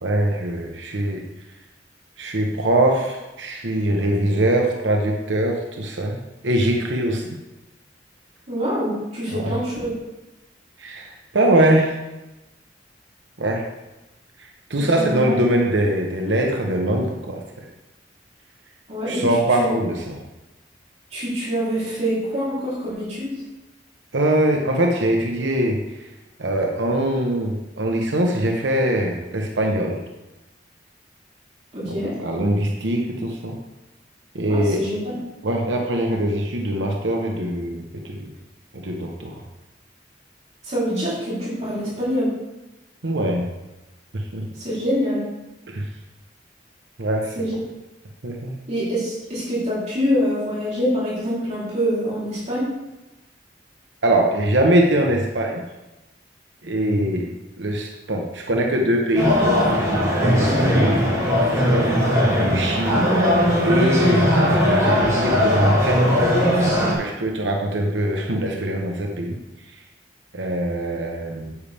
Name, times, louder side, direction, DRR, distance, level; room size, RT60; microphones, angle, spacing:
voice 1, 0.0-1.3 2.2-7.4 9.3-9.5 10.8-12.0 13.4-13.6 14.7-17.4 19.1-20.2 24.1-25.8 26.4-30.0 31.9-33.6 34.3-34.9 35.4-38.3 38.8-39.4 43.0-43.5 44.1-44.5 45.7-45.9 47.0-47.3 48.2-48.5 54.0-55.6 56.6-57.3 57.6-59.7 60.2-60.9 61.6-62.0 62.4-63.1 63.6-66.0 66.8-69.4 70.3-71.5, right 1 dB, 80° right, 1 dB, 1.0 m, -22 dB
voice 2, 8.5-9.9 14.8-15.3 18.9-19.2 19.6-19.8 21.1-23.3 31.7-32.1 34.5-35.2 40.6-42.3 44.6-45.2 47.4-47.6 48.7-52.7, equal, 40° right, -9 dB, 3.5 m, -25 dB
sound 1, 59.2-66.9, equal, 15° right, 3.3 m, -19 dB
9.4 x 8.6 x 3.5 m, 1.0 s
head